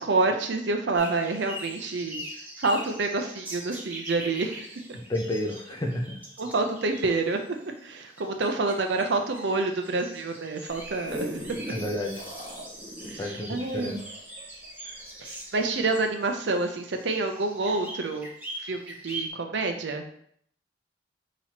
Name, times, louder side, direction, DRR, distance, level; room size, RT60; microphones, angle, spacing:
voice 1, 0.0-2.2 2.6-4.7 6.4-7.6 7.8-11.3 13.1-14.0 15.2-18.3 18.6-20.0, right 3 dB, 70° right, 5 dB, 0.6 m, -28 dB
sound 1, 0.9-19.3, right 1 dB, 10° right, 0.8 m, -42 dB
voice 2, 5.1-6.2 11.7-12.2 13.2-14.0, left 1 dB, 20° left, 1 dB, 0.6 m, -31 dB
sound 2, 10.7-15.4 15.9-16.0, equal, 40° right, 1.5 m, -39 dB
5.7 x 3.0 x 2.9 m, 0.65 s
head